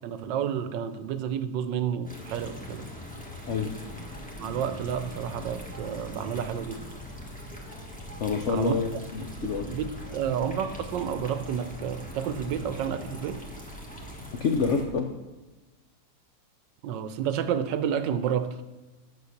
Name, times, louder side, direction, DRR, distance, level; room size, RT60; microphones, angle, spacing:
voice 1, 0.0-2.9 4.4-6.8 8.5-8.8 9.2-9.3 9.5-13.4 16.8-18.6, right 8 dB, 75° right, 11 dB, 1.3 m, -30 dB
sound 1, 2.0-14.8, equal, 5° left, 1.2 m, -41 dB
voice 2, 8.2-9.7 14.4-15.1, left 5 dB, 75° left, 4 dB, 0.6 m, -27 dB
8.4 x 6.7 x 6.5 m, 1.2 s
omnidirectional pair, 2.0 m